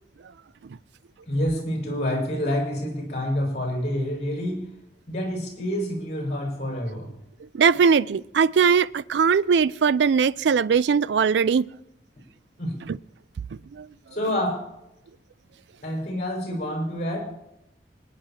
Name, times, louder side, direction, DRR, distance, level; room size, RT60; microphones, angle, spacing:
voice 1, 1.2-4.6 5.1-7.1 12.6-12.7 14.1-14.6 15.8-17.2, left 1 dB, 40° left, 5.2 m, -27 dB
voice 2, 7.5-11.7 12.9-13.0 13.7-13.9, right 6 dB, 75° right, 0.4 m, -20 dB
26.0 x 10.0 x 2.9 m
head